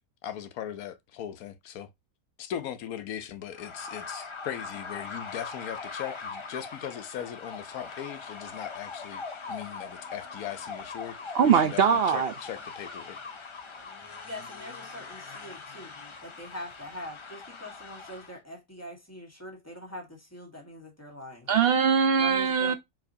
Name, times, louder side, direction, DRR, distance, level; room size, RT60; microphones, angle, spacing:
voice 1, 0.2-1.9 2.4-13.3, left 10 dB, 85° left, 1.2 m, -39 dB
sound 1, 3.5-18.4, left 4 dB, 45° left, 0.4 m, -41 dB
voice 2, 11.3-12.3 21.5-22.7, right 7 dB, 65° right, 0.6 m, -22 dB
voice 3, 14.2-15.9 16.2-21.5 22.2-22.8, equal, 10° left, 1.4 m, -43 dB
4.6 x 4.0 x 2.7 m
omnidirectional pair, 1.5 m